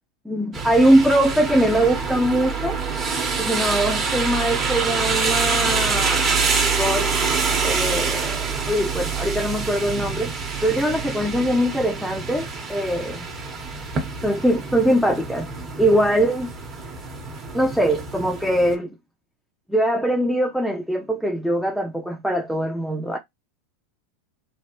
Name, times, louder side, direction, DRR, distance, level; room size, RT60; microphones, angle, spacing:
voice 1, 0.3-2.8 3.4-6.4 6.7-7.1 7.6-10.3 10.6-13.3 14.2-15.5 15.8-16.5 17.5-18.9 19.7-23.2, right 1 dB, ahead, 0.5 m, -22 dB
sound 1, 0.5-18.7, right 5 dB, 30° right, 1.0 m, -26 dB
3.2 x 2.4 x 2.9 m
hypercardioid pair, 100°, 0 cm